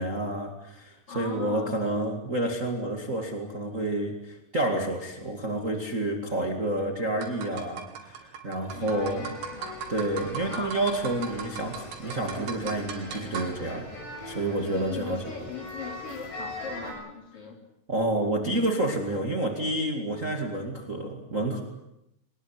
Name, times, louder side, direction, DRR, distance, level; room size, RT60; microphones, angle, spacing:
voice 1, 0.0-9.3 9.9-13.9 14.2-15.2 17.9-21.6, right 1 dB, 80° right, 3 dB, 0.7 m, -29 dB
voice 2, 1.1-1.8 8.7-9.8 10.5-10.8 14.7-17.6, left 5 dB, 35° left, 3 dB, 3.3 m, -39 dB
sound 1, 7.2-17.0, right 7 dB, 60° right, 4.4 m, -42 dB
sound 2, 8.7-16.9, left 2 dB, 85° left, 10.0 m, -41 dB
23.5 x 20.0 x 9.5 m, 0.85 s
omnidirectional pair, 5.8 m